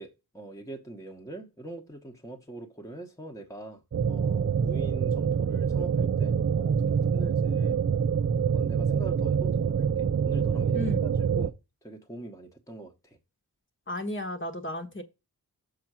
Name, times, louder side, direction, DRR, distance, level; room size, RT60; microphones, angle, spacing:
voice 1, 0.0-7.8 8.4-11.5 11.8-13.2, right 2 dB, 10° left, 1.1 m, -43 dB
sound 1, 3.9-11.5, right 7 dB, 40° right, 0.5 m, -26 dB
voice 2, 10.7-11.1 13.9-15.0, left 1 dB, 30° left, 1.2 m, -34 dB
6.7 x 4.3 x 6.1 m
wide cardioid pair, 70°, 39 cm